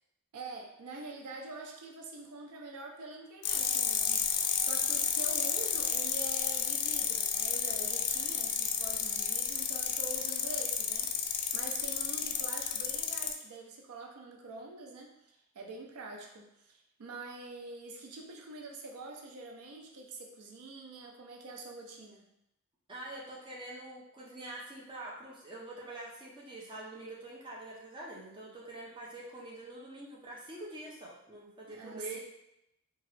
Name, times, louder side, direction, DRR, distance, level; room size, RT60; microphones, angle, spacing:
voice 1, 0.3-22.3 31.7-32.2, right 3 dB, 85° right, 1 dB, 0.5 m, -45 dB
sound 1, 3.4-13.3, left 8 dB, 85° left, 0.4 m, -31 dB
voice 2, 22.9-32.2, right 2 dB, 20° right, -4 dB, 0.6 m, -45 dB
2.9 x 2.4 x 3.1 m, 0.83 s
head